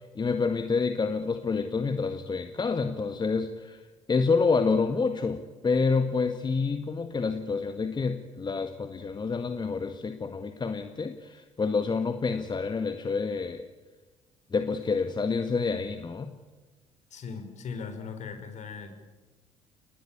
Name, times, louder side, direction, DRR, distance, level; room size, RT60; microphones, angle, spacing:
voice 1, 0.2-3.8 4.1-13.6 14.5-16.3, left 4 dB, 30° left, 8 dB, 1.7 m, -28 dB
voice 2, 17.1-18.9, left 5 dB, 50° left, 8 dB, 5.0 m, -38 dB
29.0 x 20.5 x 8.7 m, 1.2 s
figure-of-eight pair, 55°, 16 cm